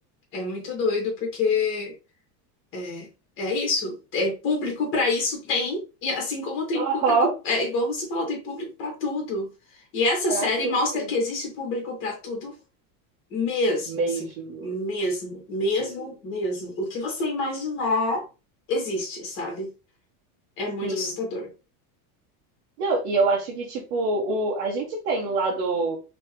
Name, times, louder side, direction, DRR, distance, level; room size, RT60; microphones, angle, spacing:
voice 1, 0.3-1.9 2.7-3.1 3.4-9.5 9.9-12.5 13.3-14.3 14.6-18.2 18.7-19.7 20.6-21.5, left 2 dB, 25° left, 0 dB, 1.6 m, -27 dB
voice 2, 6.7-7.3 10.3-11.1 13.9-14.7 15.8-16.1 20.8-21.1 22.8-26.0, right 3 dB, 75° right, -3 dB, 1.3 m, -26 dB
3.4 x 3.3 x 3.0 m, 0.30 s
supercardioid pair, 175°, 46 cm